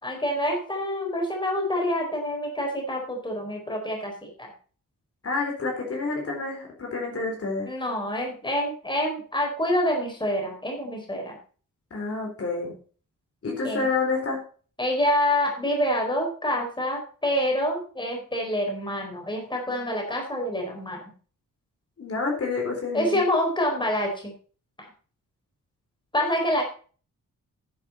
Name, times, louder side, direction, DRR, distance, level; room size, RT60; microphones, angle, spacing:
voice 1, 0.0-4.5 7.7-11.4 13.6-13.9 14.8-21.0 22.9-24.3 24.8-24.9 26.1-26.6, left 1 dB, 15° left, 1 dB, 4.5 m, -27 dB
voice 2, 5.2-7.7 11.9-12.8 13.4-14.4 22.0-23.2, left 3 dB, 45° left, 1 dB, 4.0 m, -28 dB
10.5 x 9.9 x 4.3 m, 0.40 s
wide cardioid pair, 155°, 33 cm